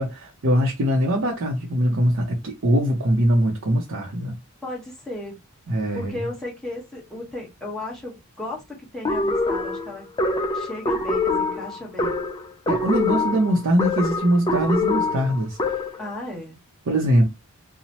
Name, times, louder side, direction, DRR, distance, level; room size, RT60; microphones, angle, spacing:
voice 1, 0.0-4.3 5.7-6.1 12.7-15.8 16.9-17.2, equal, 60° right, 0.6 m, -22 dB
voice 2, 4.6-5.4 5.9-10.1 10.5-12.2 16.0-16.6, left 1 dB, ahead, 1.0 m, -35 dB
sound 1, 9.0-16.1, left 3 dB, 20° left, 0.3 m, -25 dB
2.9 x 2.0 x 2.8 m
head